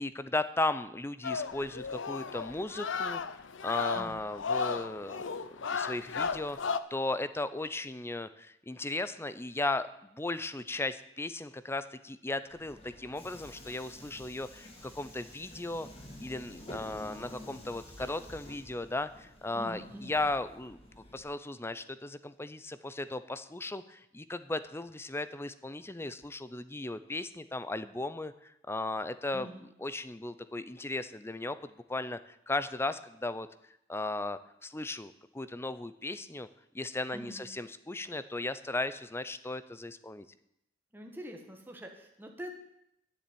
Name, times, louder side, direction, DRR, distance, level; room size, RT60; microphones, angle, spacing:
voice 1, 0.0-3.2 3.6-5.3 5.7-9.9 10.1-15.9 16.2-29.5 29.8-33.5 33.9-36.5 36.7-40.3, left 2 dB, 15° left, 13 dB, 0.6 m, -36 dB
sound 1, 1.2-6.8, left 5 dB, 75° left, 0.7 m, -34 dB
Subway metro underground, 12.5-21.2, left 1 dB, 30° left, 2.5 m, -50 dB
voice 2, 19.5-20.2 29.3-29.6 37.1-37.5 40.9-42.6, equal, 10° right, 2 dB, 1.6 m, -45 dB
10.5 x 7.1 x 9.3 m, 0.78 s
head